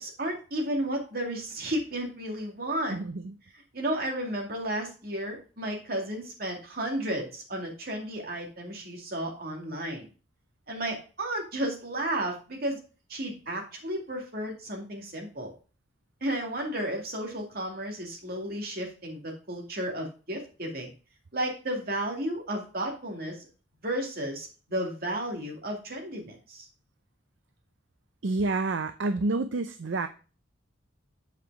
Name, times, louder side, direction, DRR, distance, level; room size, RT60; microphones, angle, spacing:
voice 1, 0.0-3.0 3.7-10.1 10.7-12.8 13.1-15.5 16.2-20.9 21.3-23.5 23.8-26.7, right 1 dB, 50° right, 1 dB, 2.4 m, -33 dB
voice 2, 2.9-3.3 28.2-30.1, right 3 dB, 65° right, 10 dB, 0.5 m, -28 dB
8.2 x 5.1 x 4.7 m, 0.35 s
head